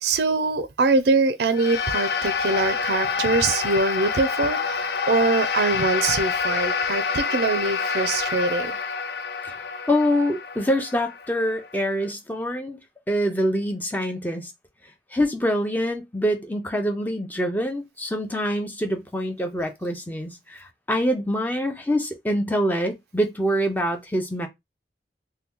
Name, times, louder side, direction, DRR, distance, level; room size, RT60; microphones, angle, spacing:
voice 1, 0.0-8.7, right 3 dB, 70° right, 0.4 m, -23 dB
sound 1, 1.5-12.0, left 5 dB, 65° left, 0.4 m, -27 dB
voice 2, 9.4-12.8 13.1-14.5 15.1-24.5, equal, 10° left, 0.6 m, -25 dB
2.8 x 2.2 x 3.5 m
head